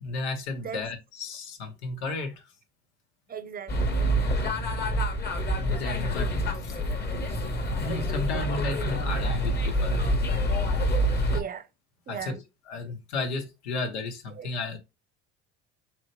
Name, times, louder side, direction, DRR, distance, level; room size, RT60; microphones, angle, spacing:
voice 1, 0.0-2.4 5.6-6.8 7.8-10.0 12.1-12.4 12.7-14.8, left 3 dB, 80° left, 1.0 m, -33 dB
voice 2, 3.3-4.1 8.7-9.0 11.3-11.7 12.1-12.4 12.8-12.9 13.7-13.8 14.3-14.5, right 7 dB, 25° right, 0.7 m, -38 dB
sound 1, 3.7-11.4, equal, 30° left, 1.1 m, -27 dB
3.9 x 3.0 x 3.1 m
hypercardioid pair, 75°, 33 cm